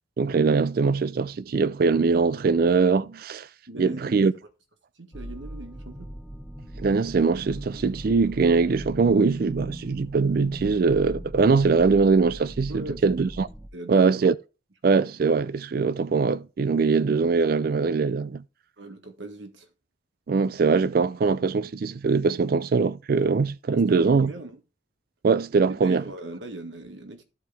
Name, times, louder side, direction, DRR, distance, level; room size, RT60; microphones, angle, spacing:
voice 1, 0.2-3.5 3.8-4.3 6.8-13.5 13.9-14.3 14.8-18.4 20.3-24.3 25.2-26.0, right 4 dB, 50° right, 0.4 m, -22 dB
voice 2, 3.7-4.3 5.0-6.1 12.7-13.0 13.7-14.3 18.8-19.7 23.7-24.6 25.7-27.2, right 2 dB, 75° right, 1.6 m, -39 dB
sound 1, 5.1-13.7, equal, ahead, 0.9 m, -40 dB
13.5 x 4.7 x 3.4 m
head